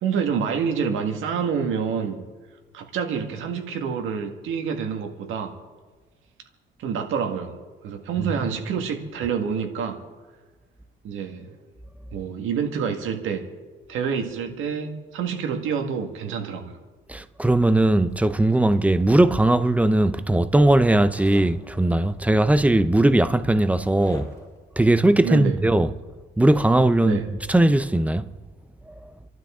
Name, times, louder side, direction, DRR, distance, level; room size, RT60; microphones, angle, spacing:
voice 1, 0.0-2.2 2.7-5.6 6.8-7.6 7.8-10.0 11.0-11.5 12.1-13.5 13.9-16.7 25.2-25.6 27.0-27.3, right 7 dB, 85° right, 1.9 m, -27 dB
voice 2, 17.1-24.3 24.8-25.9 26.4-27.2 27.5-28.2 28.9-29.0, right 1 dB, 5° right, 0.7 m, -19 dB
Zipper (clothing), 18.1-19.7 21.1-21.5 22.7-22.8 23.1-24.6, left 2 dB, 15° left, 4.6 m, -46 dB
28.5 x 12.0 x 3.8 m
cardioid pair, 90°, 20 cm